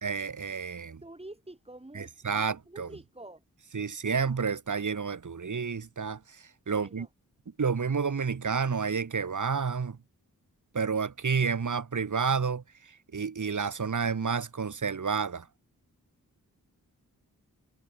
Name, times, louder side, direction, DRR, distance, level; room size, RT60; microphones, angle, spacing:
voice 1, 0.0-1.0 1.9-2.9 3.7-6.2 6.7-7.1 7.6-10.0 10.7-12.6 13.1-15.4, right 5 dB, 60° right, 2.7 m, -30 dB
voice 2, 1.0-3.4 6.7-7.1, right 1 dB, 15° right, 4.1 m, -47 dB
cardioid pair, 65°, 35 cm